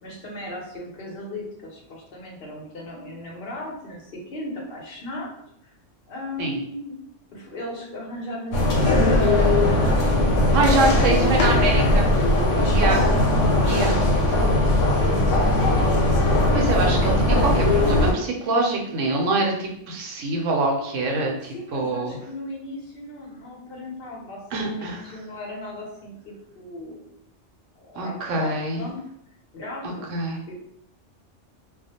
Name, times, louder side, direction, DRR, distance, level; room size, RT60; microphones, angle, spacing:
voice 1, 0.0-5.3 6.1-6.9 7.3-10.1 10.7-12.0 13.8-14.2 21.5-27.1 27.8-29.0 29.5-30.1 30.5-30.6, left 1 dB, 55° left, -2 dB, 0.8 m, -36 dB
sound 1, 8.5-18.1, left 1 dB, 85° left, 1.0 m, -19 dB
voice 2, 10.5-12.0 12.7-13.0 13.6-14.0 16.5-22.1 24.5-25.0 28.0-28.8 30.1-30.4, right 2 dB, 85° right, 0 dB, 1.0 m, -24 dB
2.4 x 2.0 x 2.7 m, 0.74 s
omnidirectional pair, 1.3 m